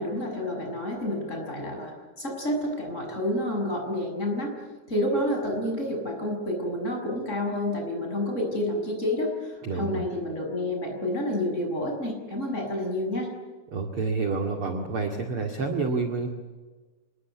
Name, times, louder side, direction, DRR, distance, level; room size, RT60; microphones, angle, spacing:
voice 1, 0.0-1.9 2.2-4.5 4.9-13.3, left 1 dB, 15° left, 2 dB, 6.5 m, -29 dB
voice 2, 9.6-10.0 13.7-16.3, right 4 dB, 40° right, 4 dB, 2.3 m, -28 dB
26.5 x 21.5 x 8.3 m, 1.3 s
omnidirectional pair, 5.1 m